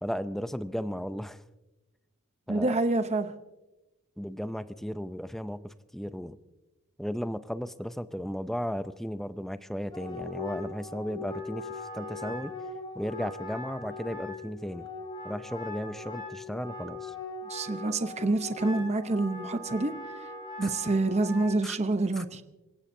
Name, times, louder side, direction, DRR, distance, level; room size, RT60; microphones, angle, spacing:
voice 1, 0.0-1.4 2.5-2.8 4.2-6.4 7.0-12.5 12.9-14.9 15.2-17.1 20.6-20.7 21.6-21.8 22.2-22.3, equal, ahead, 12 dB, 0.5 m, -35 dB
voice 2, 2.5-3.3 17.5-19.9 20.6-22.4, right 2 dB, 30° right, 10 dB, 0.8 m, -27 dB
Wind instrument woodwind instrument, 9.9-21.6, left 3 dB, 20° left, 6.0 m, -40 dB
27.0 x 17.0 x 2.7 m, 1.1 s
head